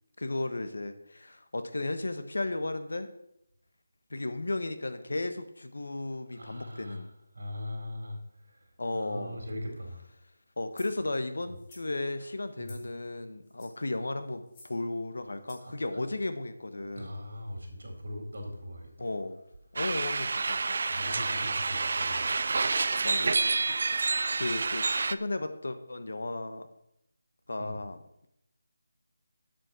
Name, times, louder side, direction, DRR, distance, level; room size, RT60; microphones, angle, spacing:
voice 1, 0.2-3.1 4.1-7.1 8.8-9.4 10.6-17.2 19.0-19.4 19.7-20.8 23.0-23.4 24.3-26.7 27.5-28.0, left 2 dB, 80° left, 9 dB, 1.3 m, -34 dB
voice 2, 6.3-7.1 7.3-8.7 8.9-10.0 12.6-12.8 15.5-16.0 16.9-19.1 20.9-22.2 27.6-27.8, left 1 dB, 70° right, 1 dB, 4.1 m, -40 dB
sound 1, 10.7-11.0 11.5-11.9 12.6-13.0 13.4-13.9 14.5-14.8 15.5-15.7, left 2 dB, 10° left, 1.6 m, -54 dB
sound 2, 19.8-25.2, right 4 dB, 45° right, 0.4 m, -28 dB
7.8 x 7.7 x 6.1 m, 0.80 s
figure-of-eight pair, 175°, 0 cm